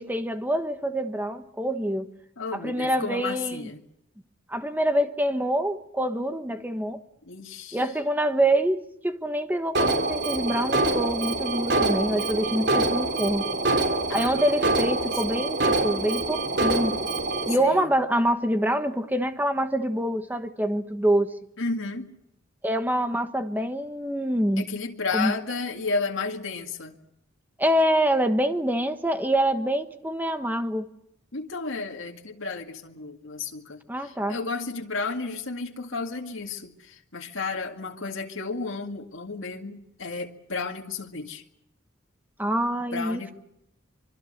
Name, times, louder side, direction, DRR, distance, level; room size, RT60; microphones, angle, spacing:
voice 1, 0.0-2.1 2.5-3.7 4.5-7.0 7.7-13.5 14.1-17.0 17.5-21.4 22.6-24.7 25.1-25.3 27.6-30.9 33.9-34.4 42.4-43.3, right 1 dB, 10° right, 1.3 m, -26 dB
voice 2, 2.4-3.8 7.3-7.8 14.1-14.4 14.9-15.4 17.6-17.9 21.6-22.1 24.6-27.0 31.3-41.4 42.9-43.3, left 4 dB, 75° left, 2.1 m, -33 dB
Alarm, 9.7-17.5, right 2 dB, 55° right, 3.3 m, -25 dB
25.5 x 24.0 x 6.7 m
head